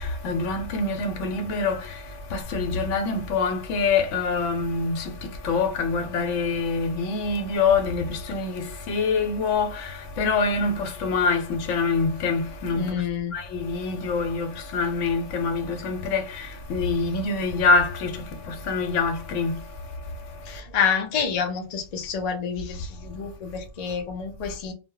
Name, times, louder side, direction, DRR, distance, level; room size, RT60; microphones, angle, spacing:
voice 1, 0.0-2.0 2.3-13.0 13.3-19.6, left 4 dB, 80° left, 0.9 m, -25 dB
voice 2, 12.7-13.4 20.5-24.7, left 7 dB, 50° left, 0.5 m, -28 dB
2.1 x 2.0 x 3.6 m
omnidirectional pair, 1.2 m